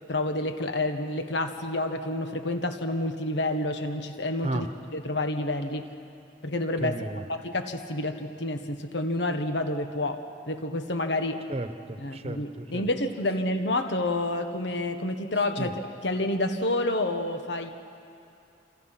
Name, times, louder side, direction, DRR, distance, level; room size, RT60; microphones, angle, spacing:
voice 1, 0.1-5.9 6.4-7.0 7.3-11.4 12.0-17.7, left 1 dB, 75° left, 7 dB, 1.4 m, -29 dB
voice 2, 6.8-7.2 11.5-12.8 15.6-15.7, right 1 dB, 35° right, 8 dB, 1.1 m, -33 dB
29.0 x 27.0 x 5.9 m, 2.6 s
head